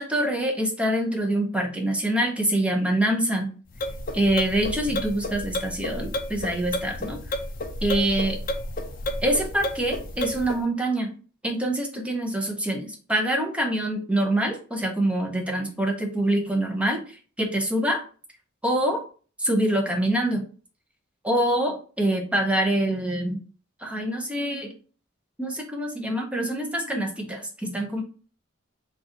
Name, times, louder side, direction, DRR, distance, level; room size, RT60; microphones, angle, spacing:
voice 1, 0.0-3.5 4.1-7.2 7.8-8.4 9.2-11.1 11.4-18.0 18.6-19.0 19.4-20.4 21.2-23.4 23.8-24.7 25.4-28.0, right 1 dB, 5° right, 1 dB, 0.6 m, -25 dB
sound 1, 3.7-10.6, left 1 dB, 40° left, 0.5 m, -31 dB
4.0 x 2.4 x 3.7 m, 0.39 s
head